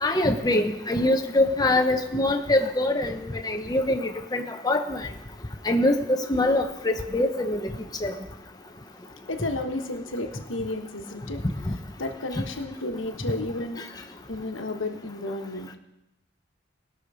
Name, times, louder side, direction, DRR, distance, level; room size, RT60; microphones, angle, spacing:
voice 1, 0.0-5.0 5.7-7.6 8.0-8.1, left 1 dB, 20° left, 4 dB, 0.7 m, -24 dB
voice 2, 9.3-11.4 12.0-13.8 14.3-15.7, left 2 dB, 90° left, 5 dB, 1.3 m, -32 dB
19.5 x 6.4 x 4.9 m, 0.93 s
head